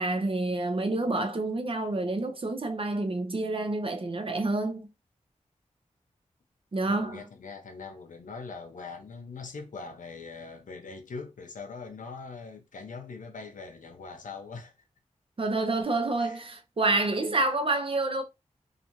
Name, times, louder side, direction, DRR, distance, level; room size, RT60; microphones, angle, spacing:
voice 1, 0.0-4.9 6.7-7.2 15.4-18.2, right 2 dB, 45° right, 0.6 m, -28 dB
voice 2, 6.8-14.7 16.2-16.4, left 4 dB, 85° left, 0.7 m, -42 dB
2.5 x 2.4 x 3.0 m
cardioid pair, 50°, 13 cm